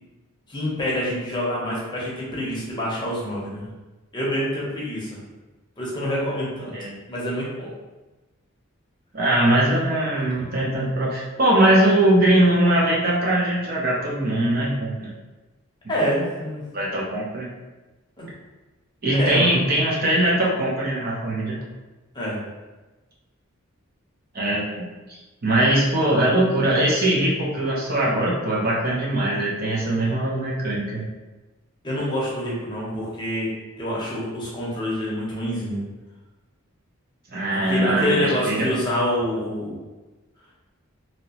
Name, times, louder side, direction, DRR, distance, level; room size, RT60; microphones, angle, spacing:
voice 1, 0.5-3.6 4.1-5.2 5.8-6.7 7.1-7.7 10.4-10.5 15.9-16.6 18.2-18.3 19.1-19.6 22.1-22.4 31.8-33.5 33.8-35.8 37.5-39.7, equal, 20° left, -6 dB, 0.8 m, -26 dB
voice 2, 9.1-15.1 16.7-17.5 19.0-21.6 24.3-24.9 25.4-31.0 37.3-38.7, right 1 dB, 45° right, -4 dB, 0.7 m, -21 dB
2.9 x 2.9 x 2.9 m, 1.1 s
head